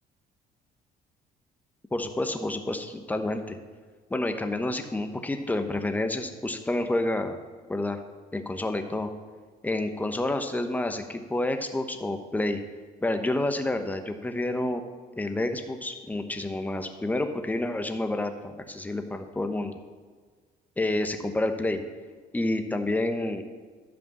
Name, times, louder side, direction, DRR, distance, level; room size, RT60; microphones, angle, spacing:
voice 1, 1.9-3.6 4.1-7.4 7.7-8.0 8.3-9.1 9.6-12.6 13.0-14.8 15.2-19.8 20.8-21.8 22.3-23.4, left 2 dB, 10° left, 6 dB, 1.0 m, -29 dB
11.0 x 5.0 x 7.2 m, 1.5 s
cardioid pair, 110°, 17 cm